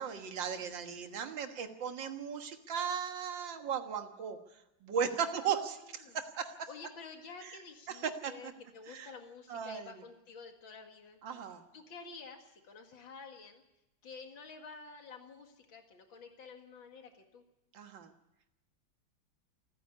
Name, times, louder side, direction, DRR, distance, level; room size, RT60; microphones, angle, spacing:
voice 1, 0.0-4.4 4.8-6.7 7.9-8.3 8.9-9.1 9.5-9.9 11.2-11.6 17.7-18.1, right 7 dB, 70° right, 6 dB, 2.2 m, -36 dB
voice 2, 5.3-6.2 6.7-11.2 11.7-13.6 14.0-17.4, left 4 dB, 80° left, 4 dB, 2.7 m, -50 dB
27.5 x 10.0 x 9.6 m, 0.91 s
omnidirectional pair, 2.1 m